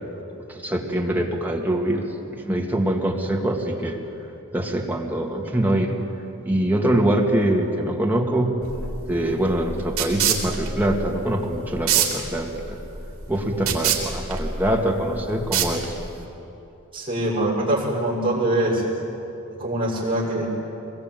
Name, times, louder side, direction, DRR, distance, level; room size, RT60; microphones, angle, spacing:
voice 1, 0.5-2.1 2.4-4.0 4.5-5.9 6.4-8.6 9.1-12.8 13.3-15.9, right 1 dB, 10° right, 0 dB, 2.1 m, -23 dB
sound 1, 8.6-16.3, right 7 dB, 70° right, 3.8 m, -27 dB
voice 2, 16.9-18.8 19.6-20.5, right 1 dB, 25° right, -5 dB, 6.7 m, -23 dB
24.0 x 21.0 x 9.2 m, 2.9 s
head